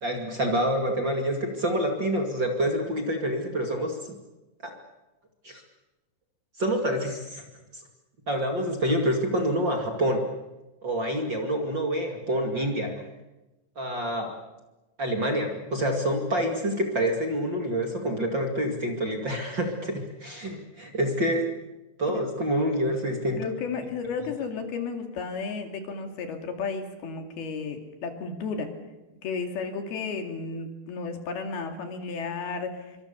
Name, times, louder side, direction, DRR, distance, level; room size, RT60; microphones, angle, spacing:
voice 1, 0.0-4.1 4.6-4.7 5.4-5.6 6.6-7.4 8.3-10.2 10.8-13.0 13.8-14.3 15.0-21.5 22.0-23.4, equal, 35° right, 3 dB, 2.5 m, -27 dB
voice 2, 23.3-28.7 29.2-33.0, left 4 dB, 70° left, 5 dB, 4.3 m, -33 dB
26.5 x 25.0 x 7.0 m, 1.1 s
omnidirectional pair, 4.6 m